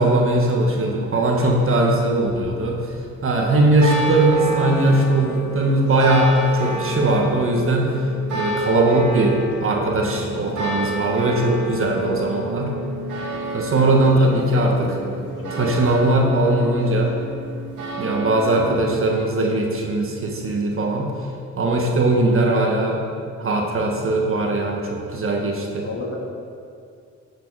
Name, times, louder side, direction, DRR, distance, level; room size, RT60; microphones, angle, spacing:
voice 1, 0.0-2.8 3.2-8.0 8.3-12.7 13.5-14.9 15.5-17.1 18.0-21.1 21.6-23.0 23.4-25.9, right 2 dB, 45° right, 0 dB, 1.5 m, -19 dB
sound 1, 0.6-18.9, right 2 dB, 80° right, 2.2 m, -30 dB
voice 2, 0.7-1.8 14.0-17.1 25.8-26.2, left 2 dB, 45° left, -2 dB, 1.8 m, -35 dB
10.5 x 5.1 x 4.8 m, 2.3 s
cardioid pair, 90°, 30 cm